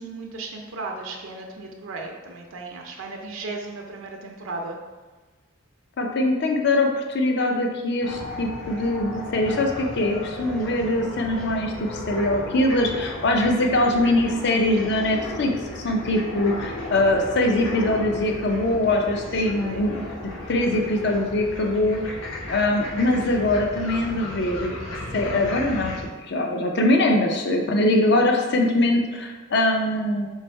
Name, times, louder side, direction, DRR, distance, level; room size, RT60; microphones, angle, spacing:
voice 1, 0.0-4.8 13.9-14.3 19.3-19.8 27.7-28.1, right 3 dB, 80° right, 1 dB, 0.5 m, -36 dB
voice 2, 6.0-15.5 15.8-20.0 20.5-22.2 22.5-24.8 25.1-26.0 26.3-30.3, left 1 dB, 55° left, 2 dB, 0.5 m, -22 dB
sound 1, 8.0-26.0, left 2 dB, 85° left, 1.1 m, -35 dB
3.4 x 3.2 x 4.3 m, 1.3 s
head